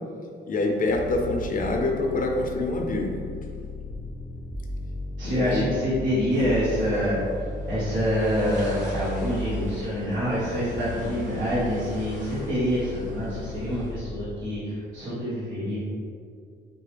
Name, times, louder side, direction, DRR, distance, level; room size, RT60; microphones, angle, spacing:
voice 1, 0.5-3.2 5.2-5.7, left 2 dB, 45° left, 2 dB, 0.6 m, -26 dB
sound 1, 0.9-14.1, left 2 dB, 15° right, 0.6 m, -36 dB
voice 2, 5.2-7.2 7.7-15.8, equal, 75° right, -12 dB, 1.4 m, -26 dB
sound 2, 6.3-13.9, right 1 dB, 40° right, 1.4 m, -46 dB
5.8 x 2.1 x 3.4 m, 2.3 s
cardioid pair, 90°, 20 cm